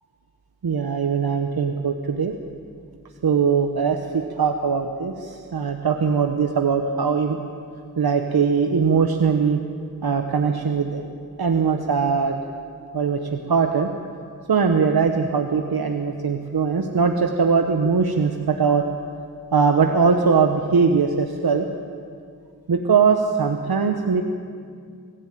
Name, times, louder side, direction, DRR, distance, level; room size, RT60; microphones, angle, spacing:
voice 1, 0.6-2.3 3.2-7.4 8.0-9.6 10.0-11.0 11.4-12.4 12.9-13.9 14.5-18.9 19.5-21.7 22.7-24.2, right 5 dB, 90° right, 5 dB, 1.1 m, -21 dB
24.5 x 14.5 x 9.1 m, 2.3 s
wide cardioid pair, 70°, 36 cm